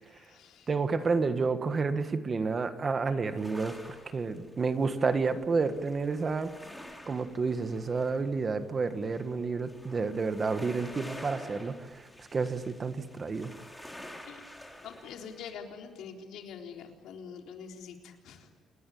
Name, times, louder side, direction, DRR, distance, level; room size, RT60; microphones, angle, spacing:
voice 1, 0.0-0.7 14.2-14.4 14.8-18.5, left 6 dB, 90° left, 2 dB, 3.8 m, -45 dB
voice 2, 0.7-6.5 7.1-13.5, right 4 dB, 25° right, 9 dB, 1.5 m, -30 dB
sound 1, 3.2-15.5, left 1 dB, 5° left, 3.2 m, -49 dB
28.5 x 21.0 x 8.6 m, 1.4 s
cardioid pair, 175°, 0 cm